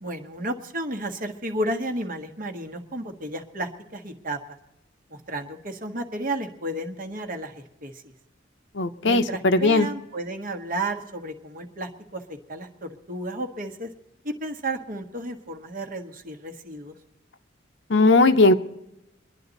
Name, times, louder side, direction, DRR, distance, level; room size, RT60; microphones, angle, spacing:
voice 1, 0.0-4.4 5.1-8.1 9.0-13.9 14.2-16.9, right 1 dB, 50° right, 4 dB, 1.5 m, -32 dB
voice 2, 8.7-9.9 17.9-18.5, left 2 dB, 70° left, 9 dB, 0.9 m, -18 dB
24.5 x 10.5 x 4.1 m, 0.91 s
head